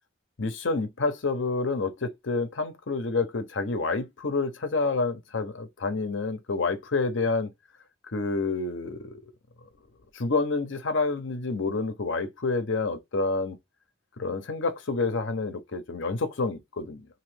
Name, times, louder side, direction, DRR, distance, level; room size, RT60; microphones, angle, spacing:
voice 1, 0.4-7.5 8.1-9.2 10.1-13.6 14.2-17.1, left 3 dB, 75° left, 0.7 m, -28 dB
3.0 x 2.7 x 3.3 m
head